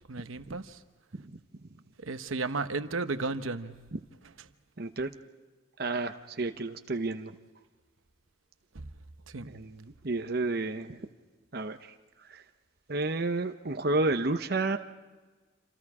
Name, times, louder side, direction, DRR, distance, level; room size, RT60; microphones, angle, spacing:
voice 1, 0.1-0.8 2.0-3.7 8.7-8.9 9.3-9.5, right 3 dB, 90° right, 0.9 m, -34 dB
voice 2, 4.8-5.1 5.8-7.3 9.4-11.0 11.5-11.9 12.3-12.4 12.9-14.8, right 2 dB, 50° right, 0.9 m, -31 dB
27.0 x 27.0 x 4.9 m
head